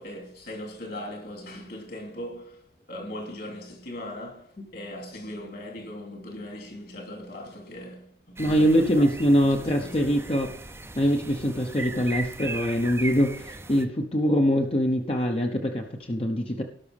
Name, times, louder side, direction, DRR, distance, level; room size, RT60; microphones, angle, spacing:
voice 1, 0.0-2.6 2.9-9.1 9.7-10.2, left 1 dB, 55° left, 2.8 m, -39 dB
voice 2, 8.4-10.5 11.0-16.6, equal, 30° left, 0.9 m, -23 dB
sound 1, 8.4-13.8, right 3 dB, 15° right, 0.7 m, -38 dB
18.0 x 6.1 x 3.5 m
head